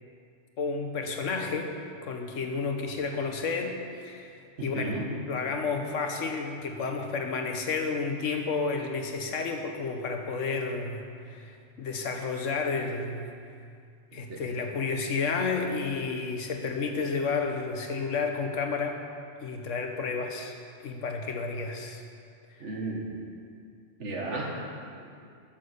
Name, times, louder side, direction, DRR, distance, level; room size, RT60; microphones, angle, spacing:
voice 1, 0.6-1.7 2.0-13.3 14.1-19.0 19.4-20.5 20.8-22.0, left 4 dB, 85° left, 4 dB, 1.4 m, -31 dB
voice 2, 4.6-5.1 14.1-14.5 22.6-23.1 24.0-24.6, right 2 dB, 70° right, -1 dB, 1.8 m, -34 dB
9.4 x 7.4 x 6.6 m, 2.3 s
omnidirectional pair, 1.3 m